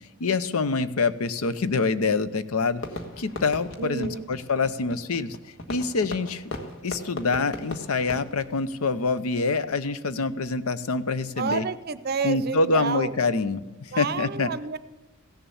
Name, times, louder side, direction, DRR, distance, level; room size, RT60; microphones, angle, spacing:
voice 1, 0.2-2.8 3.2-5.4 5.7-6.5 6.8-11.6 12.2-14.5, left 4 dB, 90° left, 14 dB, 0.7 m, -26 dB
Fireworks, 2.8-9.3, left 2 dB, 60° left, 1.4 m, -39 dB
voice 2, 3.8-4.3 11.4-13.1 13.9-14.8, right 5 dB, 45° right, 15 dB, 0.6 m, -29 dB
15.5 x 7.1 x 7.0 m, 1.1 s
head